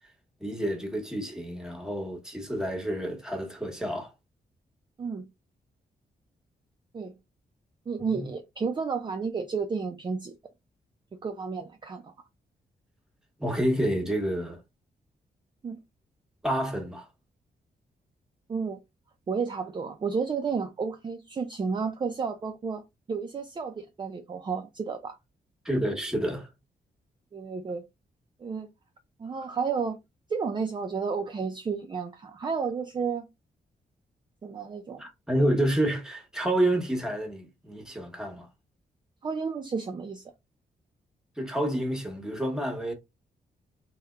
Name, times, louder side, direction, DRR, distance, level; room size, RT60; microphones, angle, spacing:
voice 1, 0.4-4.1 8.1-8.3 13.4-14.6 16.4-17.0 25.6-26.5 35.0-38.5 41.4-42.9, right 1 dB, 5° right, 1.0 m, -29 dB
voice 2, 7.9-10.4 11.2-12.1 15.6-15.8 18.5-18.8 19.3-22.8 23.1-25.2 27.3-27.8 28.4-28.7 29.2-30.0 30.3-33.3 34.4-35.0 39.2-40.2, right 5 dB, 30° right, 0.4 m, -31 dB
3.4 x 2.7 x 2.3 m
cardioid pair, 110°, 16 cm